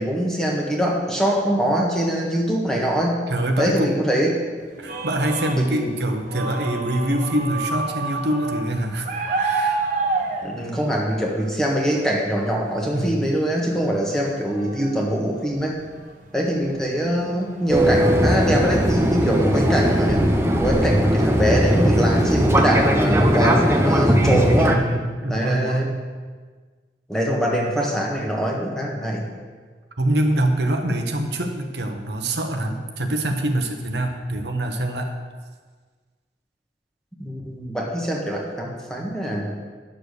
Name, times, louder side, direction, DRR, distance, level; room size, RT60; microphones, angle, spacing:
voice 1, 0.0-3.2 3.6-4.4 5.6-5.9 10.4-15.8 16.3-20.2 20.6-24.8 25.3-25.9 27.1-29.2 37.2-39.6, equal, 5° left, -2 dB, 1.5 m, -23 dB
voice 2, 3.3-3.9 4.8-9.1 9.4-9.8 12.9-13.3 24.2-26.0 30.0-35.2, right 1 dB, 75° right, 4 dB, 1.1 m, -24 dB
sound 1, 4.6-11.6 11.9-12.0 12.4-12.8 13.2-13.3 13.8-23.1, right 3 dB, 45° right, 1.2 m, -31 dB
Fixed-wing aircraft airplane, 17.7-24.7, equal, 15° right, 0.8 m, -19 dB
10.0 x 6.9 x 6.7 m, 1.5 s
head